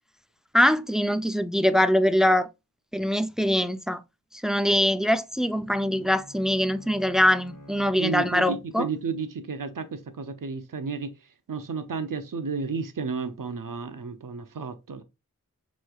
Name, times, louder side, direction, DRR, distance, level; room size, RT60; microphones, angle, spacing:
voice 1, 0.5-2.5 2.9-4.0 4.4-8.9, left 1 dB, ahead, 0.3 m, -23 dB
Bowed string instrument, 5.3-8.9, equal, 80° left, 1.1 m, -49 dB
voice 2, 8.0-11.1 11.5-15.0, right 5 dB, 85° right, 0.6 m, -32 dB
5.4 x 3.1 x 2.3 m
wide cardioid pair, 50°, 32 cm